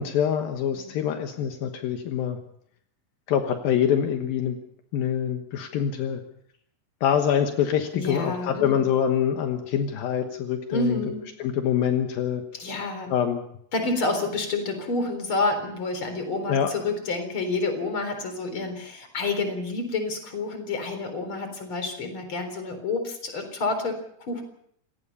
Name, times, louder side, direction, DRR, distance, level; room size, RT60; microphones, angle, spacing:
voice 1, 0.0-2.4 3.3-4.6 4.9-6.2 7.0-11.0 11.4-12.4 13.1-13.4 16.5-16.7, left 9 dB, 75° left, 5 dB, 3.0 m, -25 dB
voice 2, 7.9-8.9 10.7-11.3 12.6-13.1 13.7-24.4, left 3 dB, 35° left, 7 dB, 4.5 m, -29 dB
27.0 x 18.5 x 5.6 m, 0.69 s
omnidirectional pair, 4.4 m